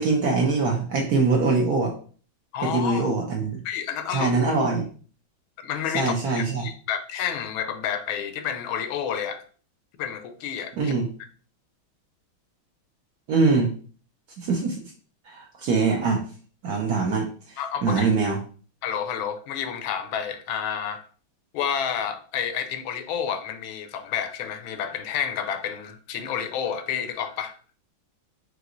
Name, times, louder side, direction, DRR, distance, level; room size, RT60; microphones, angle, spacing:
voice 1, 0.0-1.9 2.6-3.6 4.1-4.8 5.9-6.7 10.8-11.1 13.3-13.7 14.4-14.8 15.3-16.2 16.6-18.4, right 4 dB, 60° right, 1.1 m, -23 dB
voice 2, 2.5-3.1 3.6-4.3 5.6-9.4 10.0-10.9 17.6-18.1 18.8-21.1 21.5-27.6, left 8 dB, 80° left, 1.4 m, -30 dB
4.8 x 3.1 x 2.5 m
omnidirectional pair, 2.2 m